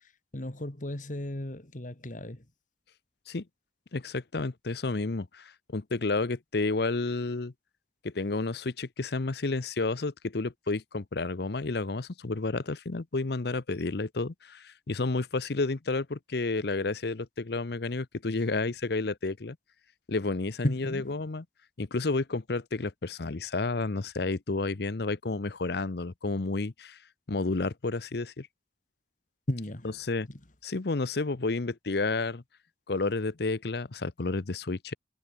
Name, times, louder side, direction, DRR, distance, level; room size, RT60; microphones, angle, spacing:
voice 1, 0.3-2.4 20.6-21.2 29.5-29.9 30.3-30.4, left 1 dB, 45° left, 2.0 m, -34 dB
voice 2, 3.9-7.5 8.0-19.6 20.1-21.4 21.8-27.0 27.3-28.5 30.0-30.3 30.6-32.4 32.9-34.9, left 3 dB, 60° left, 0.8 m, -31 dB
head